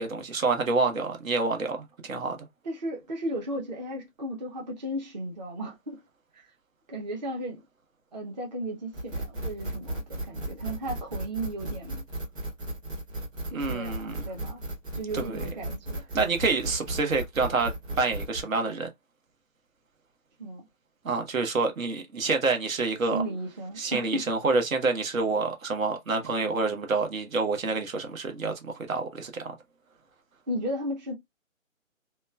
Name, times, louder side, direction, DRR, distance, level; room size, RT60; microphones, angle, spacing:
voice 1, 0.0-1.8 2.0-2.4 13.5-14.2 15.1-15.4 16.1-18.9 21.0-23.2 23.8-29.3, right 3 dB, 80° right, 1.0 m, -27 dB
voice 2, 2.6-6.0 6.3-6.5 6.9-7.6 8.1-12.0 13.5-14.6 14.9-16.0 20.4-20.7 23.1-24.2 30.5-31.1, right 1 dB, 35° right, 0.6 m, -35 dB
sound 1, 8.9-18.4, right 1 dB, 15° right, 1.0 m, -35 dB
3.0 x 2.1 x 2.2 m
hypercardioid pair, 155°, 40 cm